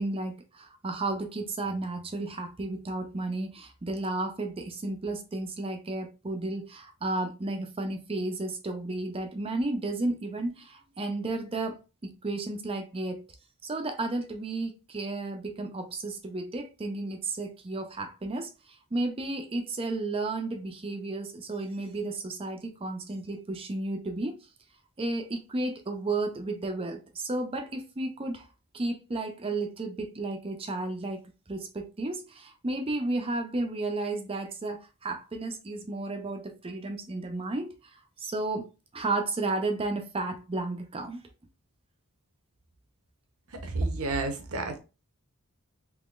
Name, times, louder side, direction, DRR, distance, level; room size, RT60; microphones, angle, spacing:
voice 1, 0.0-13.2 13.6-24.4 25.0-28.5 28.7-31.2 31.5-38.6 38.9-41.2, right 2 dB, 25° right, 0.5 m, -33 dB
voice 2, 43.5-44.8, right 2 dB, 80° right, 0.8 m, -30 dB
3.6 x 3.0 x 2.4 m
head